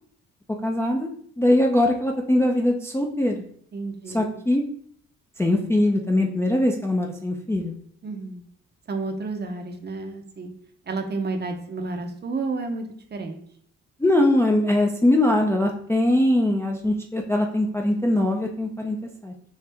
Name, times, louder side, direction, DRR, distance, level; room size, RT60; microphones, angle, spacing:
voice 1, 0.6-1.1 1.4-3.4 4.1-4.6 5.4-7.7 14.0-19.0 19.2-19.3, left 1 dB, 10° left, 1 dB, 0.4 m, -21 dB
voice 2, 3.7-4.4 8.0-8.4 8.9-10.5 10.9-12.8 13.1-13.4, right 3 dB, 35° right, 5 dB, 0.7 m, -31 dB
4.4 x 2.4 x 3.4 m, 0.62 s
cardioid pair, 90°, 30 cm